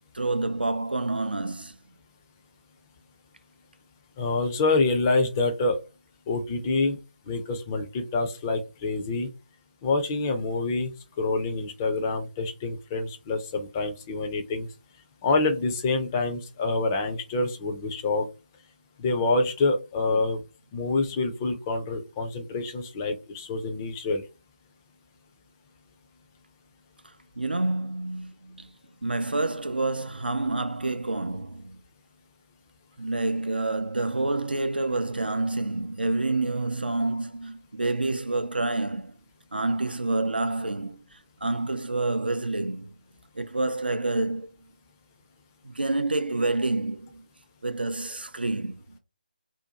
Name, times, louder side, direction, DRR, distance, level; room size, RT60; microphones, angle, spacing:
voice 1, 0.1-1.8 27.4-28.7 29.0-31.8 33.0-39.2 39.5-42.9 43.4-44.6 45.6-47.2 47.6-49.0, right 2 dB, 80° right, 0.4 m, -28 dB
voice 2, 4.2-5.8 6.3-7.0 7.3-9.3 9.8-14.7 15.2-18.3 19.0-20.4 20.7-24.2, left 3 dB, 15° left, 0.4 m, -26 dB
2.6 x 2.2 x 2.7 m
figure-of-eight pair, 150°, 5 cm